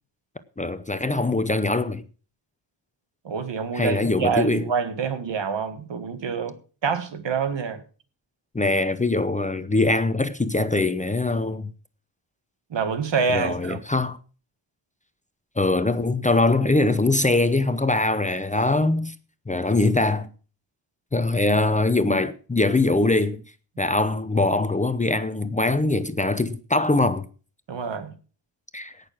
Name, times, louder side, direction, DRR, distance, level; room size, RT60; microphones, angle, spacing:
voice 1, 0.6-2.0 3.7-4.6 8.5-11.7 13.3-14.2 15.6-19.1 19.5-20.3 21.1-23.4 23.8-27.2 28.7-28.9, left 2 dB, 15° left, 0.7 m, -22 dB
voice 2, 3.2-6.6 6.8-7.8 12.7-13.8 27.7-28.1, right 5 dB, 70° right, 2.0 m, -26 dB
17.5 x 6.7 x 6.0 m
wide cardioid pair, 135°, 45 cm